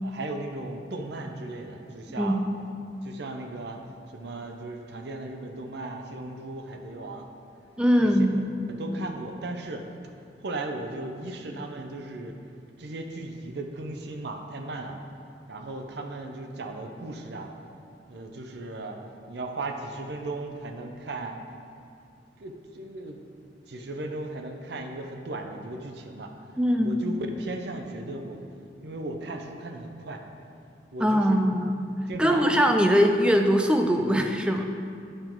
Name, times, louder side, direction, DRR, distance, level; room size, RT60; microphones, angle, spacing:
voice 1, 0.0-2.4 3.0-3.8 4.1-7.3 8.0-8.1 8.8-9.8 10.4-12.3 12.8-15.0 15.5-17.5 18.1-19.0 19.3-21.4 22.4-23.2 23.7-26.3 26.8-28.4 28.8-30.2 30.9-31.4 32.1-33.1 34.6-34.7, right 2 dB, 65° right, 4 dB, 0.6 m, -36 dB
voice 2, 7.8-8.3 26.6-27.0 31.0-31.8 32.2-34.6, equal, 5° right, 4 dB, 0.4 m, -21 dB
8.9 x 3.8 x 4.5 m, 2.5 s
head